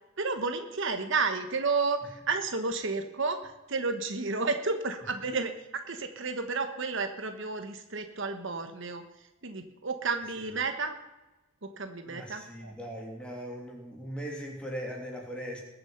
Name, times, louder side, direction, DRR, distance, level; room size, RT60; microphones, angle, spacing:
voice 1, 0.2-5.5 5.9-9.0 9.4-10.9 11.6-12.7, right 4 dB, 60° right, 7 dB, 1.1 m, -31 dB
voice 2, 12.1-15.6, equal, 5° left, -1 dB, 2.9 m, -39 dB
21.0 x 7.1 x 5.7 m, 1.1 s
head